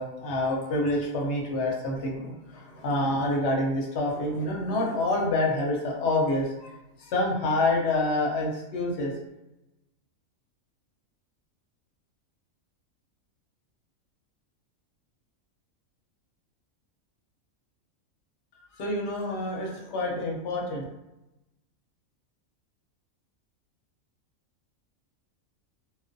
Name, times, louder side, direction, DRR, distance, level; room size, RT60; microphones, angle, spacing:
voice 1, 0.0-6.7 7.0-9.1 18.7-20.8, left 2 dB, 60° left, -2 dB, 0.8 m, -27 dB
2.3 x 2.2 x 2.5 m, 0.95 s
omnidirectional pair, 1.4 m